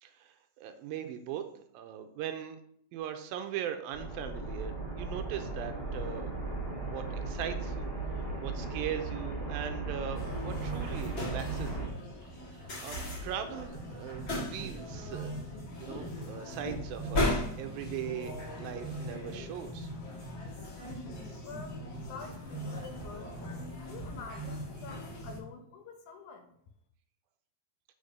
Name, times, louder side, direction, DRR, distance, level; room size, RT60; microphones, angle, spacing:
voice 1, 0.0-1.5 1.7-2.6 2.9-6.3 6.8-7.9 8.4-12.0 12.5-15.3 15.8-19.9, right 9 dB, 80° right, 7 dB, 2.3 m, -40 dB
sound 1, 3.9-11.9, right 3 dB, 20° left, 0.8 m, -37 dB
sound 2, 10.2-25.4, left 1 dB, 45° left, 1.9 m, -38 dB
voice 2, 21.4-23.3 23.8-26.5, left 5 dB, 75° left, 5 dB, 1.8 m, -47 dB
6.9 x 5.2 x 5.3 m, 0.67 s
omnidirectional pair, 4.6 m